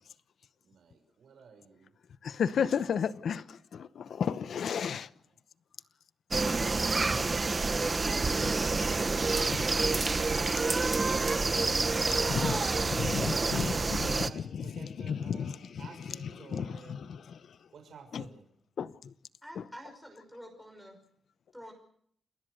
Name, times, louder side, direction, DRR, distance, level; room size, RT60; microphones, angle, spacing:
voice 1, 0.6-1.9 7.4-9.2 9.8-10.7 13.3-16.9 17.7-18.5, right 5 dB, 60° right, 6.3 m, -51 dB
voice 2, 2.2-5.1 6.5-6.6 9.5-9.6 12.2-13.7 14.0-15.8 16.2-17.4 18.1-18.2 18.8-18.9, left 7 dB, 60° left, 0.9 m, -33 dB
sound 1, 6.3-14.3, right 3 dB, 25° right, 1.0 m, -28 dB
voice 3, 19.4-21.0 21.5-21.7, equal, ahead, 5.5 m, -48 dB
28.5 x 19.5 x 6.5 m
wide cardioid pair, 170°, 0 cm